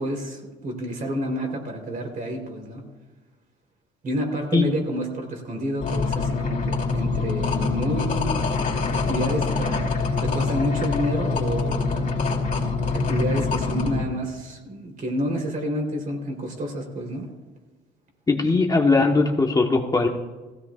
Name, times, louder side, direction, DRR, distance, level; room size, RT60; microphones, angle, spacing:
voice 1, 0.0-2.8 4.0-8.6 8.9-12.1 12.9-17.3, equal, 45° right, 2 dB, 3.7 m, -29 dB
sound 1, 5.8-14.0, left 4 dB, 45° left, 3.0 m, -25 dB
voice 2, 18.3-20.1, left 3 dB, 20° left, 2 dB, 1.3 m, -20 dB
17.5 x 15.5 x 2.5 m, 1.2 s
cardioid pair, 105°, 19 cm